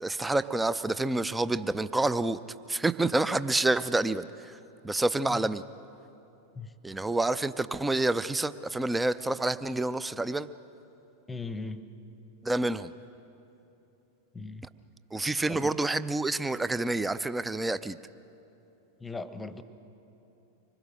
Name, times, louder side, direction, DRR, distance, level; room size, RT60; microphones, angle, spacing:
voice 1, 0.0-2.4 2.7-4.6 4.8-5.6 6.8-10.5 12.4-12.9 15.1-18.0, right 2 dB, 10° right, 15 dB, 0.5 m, -28 dB
voice 2, 11.3-11.9 14.3-14.7 15.5-15.8 19.0-19.6, left 3 dB, 10° left, 12 dB, 1.0 m, -38 dB
25.5 x 21.0 x 6.3 m, 2.9 s
figure-of-eight pair, 90°, 0 cm